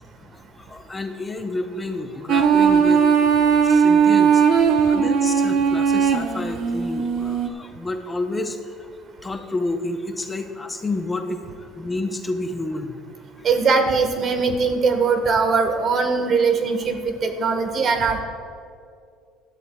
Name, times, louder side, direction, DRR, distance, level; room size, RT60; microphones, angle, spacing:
voice 1, 0.3-8.9 9.2-13.0 13.4-13.5, left 2 dB, 20° left, 6 dB, 0.8 m, -30 dB
sound 1, 2.3-7.5, right 6 dB, 60° right, 0.9 m, -18 dB
voice 2, 13.4-18.2, right 4 dB, 45° right, 6 dB, 1.4 m, -21 dB
17.5 x 12.5 x 2.3 m, 2.3 s
supercardioid pair, 105°, 0 cm